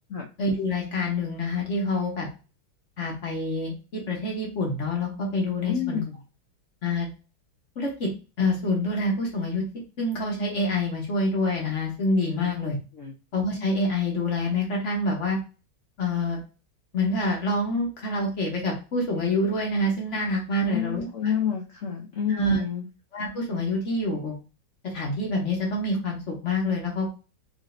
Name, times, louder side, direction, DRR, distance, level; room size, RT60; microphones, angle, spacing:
voice 1, 0.4-2.3 3.0-6.0 6.8-7.1 7.8-8.1 8.4-9.6 10.0-12.8 13.3-15.4 16.0-16.4 16.9-21.0 22.3-22.6 23.1-24.4 24.8-27.1, left 2 dB, 45° left, -1 dB, 1.1 m, -26 dB
voice 2, 5.6-6.2 12.3-12.5 12.9-13.1 20.6-22.9, left 7 dB, 80° left, 0 dB, 0.7 m, -29 dB
4.9 x 2.7 x 2.5 m, 0.32 s
omnidirectional pair, 2.2 m